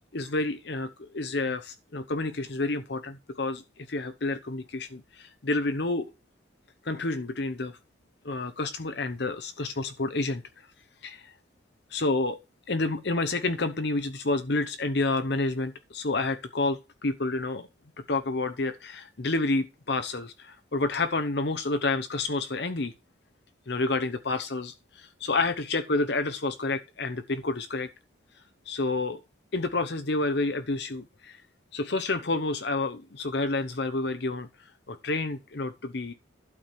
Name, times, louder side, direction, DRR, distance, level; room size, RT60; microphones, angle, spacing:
voice 1, 0.1-6.1 6.8-7.7 8.2-10.7 11.0-11.3 11.9-12.4 12.7-17.7 18.1-22.9 23.7-27.9 28.7-29.2 29.5-31.4 31.7-36.1, left 2 dB, 55° left, 0.9 m, -29 dB
12.0 x 4.8 x 7.6 m
head